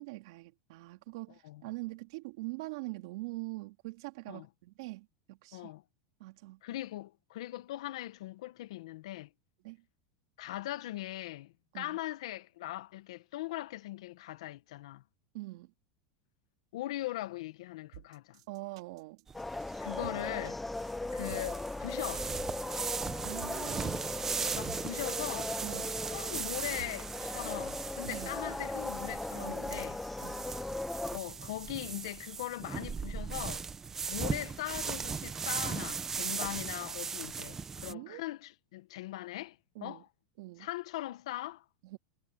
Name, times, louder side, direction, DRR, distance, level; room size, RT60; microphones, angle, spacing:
voice 1, 0.0-5.7 6.2-6.6 9.6-9.8 11.7-12.0 15.3-15.7 18.5-19.2 23.2-24.0 25.6-26.0 28.1-28.4 29.3-29.8 30.2-30.5 37.9-38.2 39.7-40.0 40.4-40.7 41.8-42.0, right 22 dB, 60° right, 2.9 m, -43 dB
voice 2, 5.5-5.8 6.6-9.3 10.4-15.0 16.7-18.4 19.8-20.6 21.1-22.3 24.5-25.6 26.1-30.0 31.1-33.6 34.1-40.0 40.6-41.6, left 15 dB, 70° left, 1.1 m, -40 dB
sound 1, 17.9-28.1, right 15 dB, 75° right, 2.6 m, -51 dB
sound 2, 19.3-31.2, left 2 dB, 5° left, 0.4 m, -38 dB
sound 3, 19.3-37.9, right 5 dB, 15° right, 0.8 m, -38 dB
supercardioid pair, 170°, 3 cm